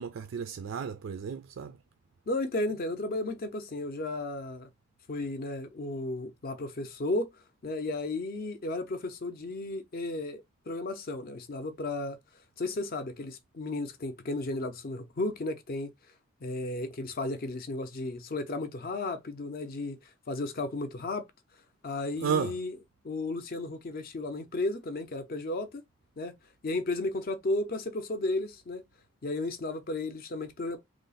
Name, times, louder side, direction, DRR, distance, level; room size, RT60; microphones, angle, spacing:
voice 1, 0.0-1.8 22.2-22.5, right 7 dB, 65° right, 0.3 m, -32 dB
voice 2, 2.3-4.7 5.1-7.3 7.6-12.2 12.6-15.9 16.4-20.0 20.3-21.3 21.8-22.8 23.0-25.8 26.2-26.3 26.6-28.8 29.2-30.8, left 2 dB, 45° left, 0.5 m, -34 dB
3.1 x 2.0 x 3.9 m
head